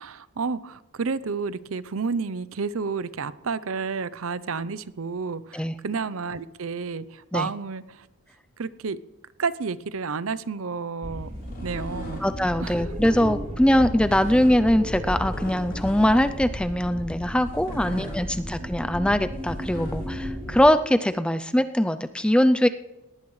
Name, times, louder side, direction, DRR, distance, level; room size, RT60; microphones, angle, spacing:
voice 1, 0.0-8.1 8.6-9.0 9.4-11.3 11.6-12.2 12.6-12.9, right 5 dB, 70° right, 16 dB, 0.6 m, -31 dB
sound 1, 11.0-20.7, equal, 30° right, 3.7 m, -34 dB
sound 2, 11.3-12.3 12.9-13.2 14.1-14.5 15.3-16.3 17.5-18.2 19.4-20.1, equal, 40° left, 6.6 m, -42 dB
voice 2, 12.2-22.7, equal, 5° left, 10 dB, 0.4 m, -22 dB
19.0 x 18.0 x 3.2 m, 1.0 s
head